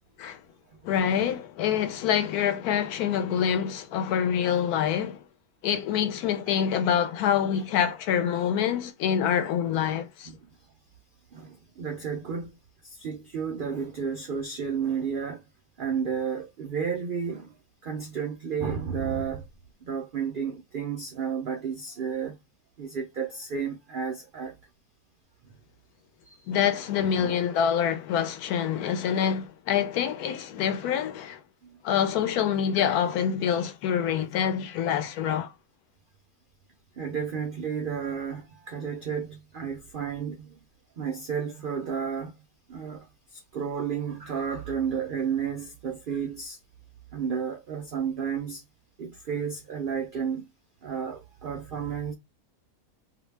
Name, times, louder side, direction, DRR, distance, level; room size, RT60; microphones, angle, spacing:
voice 1, 0.8-5.2 5.6-10.3 26.5-31.4 31.8-35.5, left 8 dB, 85° left, 1.1 m, -26 dB
voice 2, 11.3-12.6 12.8-15.4 15.8-17.5 17.8-19.5 19.9-22.4 22.8-24.6 25.4-25.6 26.3-26.4 26.7-27.5 31.6-31.8 37.0-40.6 41.0-42.4 42.7-46.6 47.1-48.6 49.0-50.5 50.8-52.1, right 7 dB, 80° right, 0.4 m, -32 dB
2.7 x 2.1 x 3.1 m
omnidirectional pair, 1.6 m